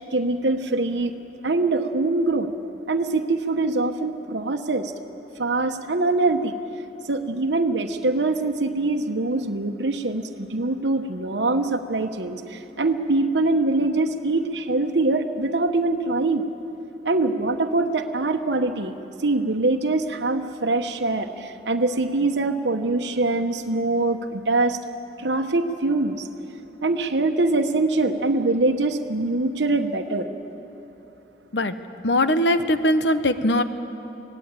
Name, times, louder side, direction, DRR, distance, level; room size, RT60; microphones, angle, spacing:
voice 1, 0.1-1.1 1.4-2.5 2.9-4.9 5.4-6.5 7.1-16.4 17.0-18.9 19.2-24.8 25.2-26.3 26.8-30.3, right 2 dB, 80° right, 5 dB, 1.0 m, -23 dB
voice 2, 32.0-33.6, left 1 dB, 80° left, 10 dB, 1.0 m, -20 dB
23.5 x 18.0 x 9.0 m, 3.0 s
head